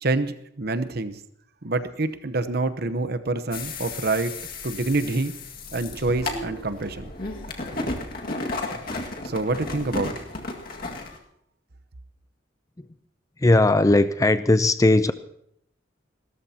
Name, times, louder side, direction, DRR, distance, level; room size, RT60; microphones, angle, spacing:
voice 1, 0.0-1.2 1.6-4.3 4.6-5.3 5.7-7.1 9.2-10.1, right 2 dB, 55° right, 11 dB, 0.9 m, -26 dB
sound 1, 3.5-11.2, left 2 dB, 50° left, 2.0 m, -33 dB
voice 2, 13.4-15.1, left 2 dB, 15° left, 12 dB, 0.5 m, -18 dB
29.5 x 14.0 x 2.9 m, 0.71 s
head